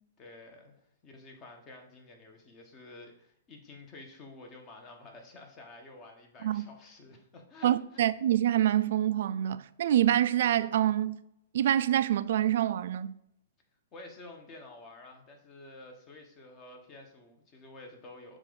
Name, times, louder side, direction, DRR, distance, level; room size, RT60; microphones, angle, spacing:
voice 1, 0.2-8.1 13.9-18.4, left 2 dB, 30° left, 1.2 m, -50 dB
voice 2, 7.6-11.2 11.5-13.1, right 11 dB, 65° right, 0.3 m, -26 dB
7.0 x 2.6 x 5.2 m
hypercardioid pair, 135°, 0 cm